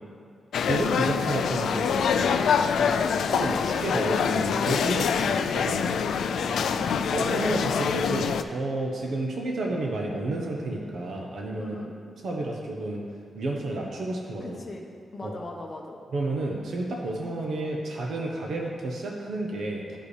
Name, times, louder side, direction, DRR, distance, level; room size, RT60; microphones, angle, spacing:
sound 1, 0.5-8.4, left 6 dB, 85° left, 0.3 m, -25 dB
voice 1, 0.6-2.4 2.8-3.0 3.3-5.8 7.1-11.7 12.2-13.0 13.3-14.6 15.2-15.3 16.1-20.0, right 2 dB, 65° right, -1 dB, 1.0 m, -31 dB
voice 2, 6.3-6.8 11.6-12.0 14.4-14.8 15.1-16.0, left 2 dB, 30° left, 0 dB, 1.1 m, -39 dB
12.5 x 5.1 x 3.3 m, 2.3 s
cardioid pair, 115°, 0 cm